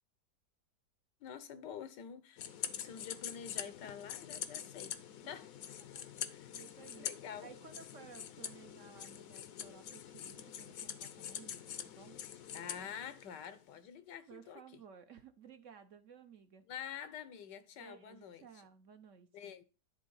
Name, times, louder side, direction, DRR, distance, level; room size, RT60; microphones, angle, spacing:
voice 1, 1.2-5.0 5.3-5.5 6.3-6.5 7.0-7.5 12.5-14.6 16.7-18.5 19.3-19.6, left 8 dB, 85° left, 1.5 m, -47 dB
sound 1, 2.4-13.6, left 9 dB, 65° left, 1.0 m, -45 dB
voice 2, 5.8-6.1 6.5-12.2 14.3-16.7 17.7-19.5, right 7 dB, 60° right, 0.9 m, -57 dB
10.5 x 3.6 x 5.4 m
omnidirectional pair, 1.9 m